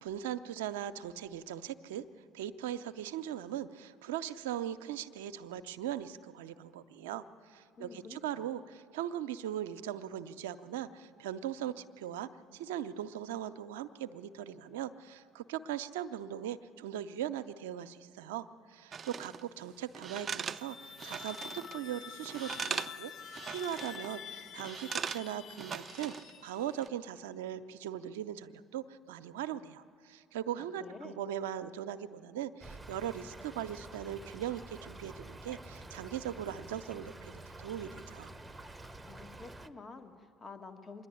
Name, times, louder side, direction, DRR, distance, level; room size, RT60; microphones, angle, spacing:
voice 1, 0.0-2.0 2.3-38.3, right 10 dB, 90° right, 11 dB, 0.6 m, -40 dB
voice 2, 7.8-8.5 30.6-31.2 39.1-41.1, left 4 dB, 35° left, 8 dB, 1.6 m, -49 dB
sound 1, 18.9-19.4 19.9-21.8 22.1-23.0 23.3-24.1 24.6-26.3 26.7-26.9, right 6 dB, 40° right, 0.5 m, -40 dB
sound 2, 20.3-26.9, left 8 dB, 55° left, 0.6 m, -47 dB
Stream / Trickle dribble, 32.6-39.7, right 2 dB, 15° right, 0.9 m, -49 dB
26.0 x 11.0 x 9.9 m, 2.3 s
supercardioid pair, 70°, 0 cm